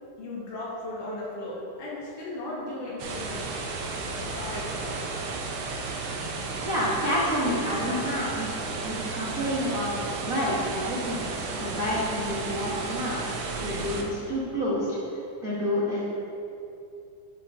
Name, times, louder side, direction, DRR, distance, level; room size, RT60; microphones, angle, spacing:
voice 1, 0.2-3.5 4.1-5.0, left 1 dB, 75° left, -5 dB, 3.0 m, -36 dB
sound 1, 3.0-14.0, right 3 dB, 85° right, 1.3 m, -33 dB
voice 2, 6.6-8.5 8.8-9.9 10.2-11.3 11.6-15.0 15.4-16.0, equal, 55° right, -9 dB, 0.9 m, -29 dB
12.0 x 4.7 x 3.6 m, 2.7 s
omnidirectional pair, 3.8 m